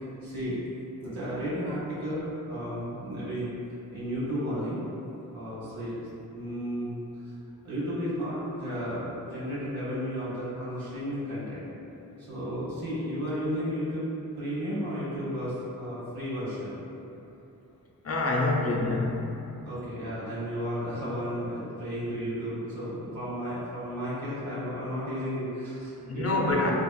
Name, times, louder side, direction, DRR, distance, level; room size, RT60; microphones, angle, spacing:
voice 1, 0.2-0.6 1.0-3.5 3.9-4.8 5.3-7.0 7.6-11.6 12.2-14.1 14.4-16.8 19.6-26.7, equal, 85° right, -10 dB, 1.3 m, -33 dB
voice 2, 18.0-19.3 26.1-26.7, left 2 dB, 45° left, -1 dB, 0.5 m, -26 dB
3.4 x 3.0 x 2.2 m, 2.9 s
cardioid pair, 60°, 35 cm